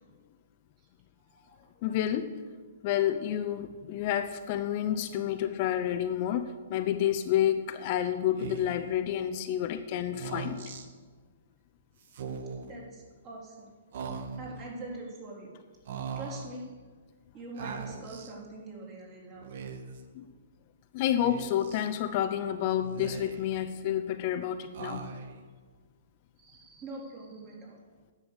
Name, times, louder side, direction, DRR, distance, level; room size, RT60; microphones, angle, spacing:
voice 1, 1.3-1.7 12.6-14.0 14.4-15.5 16.1-16.7 17.3-19.5 26.4-27.8, right 2 dB, 30° right, -3 dB, 3.7 m, -44 dB
voice 2, 1.8-2.3 2.8-10.6 20.1-20.2 20.9-25.0, left 11 dB, 40° left, 9 dB, 0.6 m, -29 dB
Speech, 8.4-8.9 10.1-10.9 12.1-12.7 13.9-14.6 15.9-16.5 17.6-18.3 19.4-20.0 21.2-21.9 22.8-23.6 24.7-25.4, right 5 dB, 60° right, 1.1 m, -40 dB
10.0 x 6.9 x 8.1 m, 1.5 s
hypercardioid pair, 140°, 0 cm